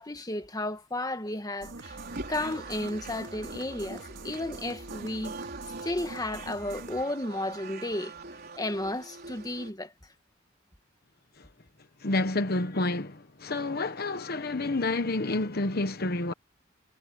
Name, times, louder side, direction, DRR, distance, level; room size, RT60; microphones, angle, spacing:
voice 1, 0.0-2.0 2.3-5.3 5.8-8.1 8.6-9.9, left 1 dB, 20° left, 1.8 m, -33 dB
sound 1, 1.6-7.0, right 2 dB, 75° right, 2.5 m, -44 dB
sound 2, 1.8-9.7, right 3 dB, 55° right, 4.1 m, -43 dB
voice 2, 12.0-16.3, left 2 dB, 55° left, 1.2 m, -29 dB
head